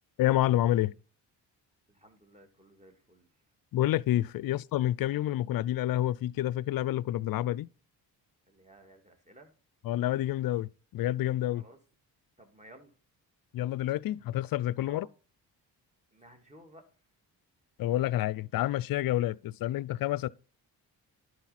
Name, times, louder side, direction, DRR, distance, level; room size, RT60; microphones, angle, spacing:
voice 1, 0.2-0.9 3.7-7.7 9.8-11.6 13.5-15.1 17.8-20.3, left 14 dB, 50° left, 0.5 m, -28 dB
voice 2, 1.9-3.3 8.5-9.5 11.5-11.8 12.4-12.9 14.8-15.1 16.1-16.8, right 1 dB, 15° right, 2.2 m, -55 dB
11.5 x 5.0 x 4.1 m
supercardioid pair, 55°, 44 cm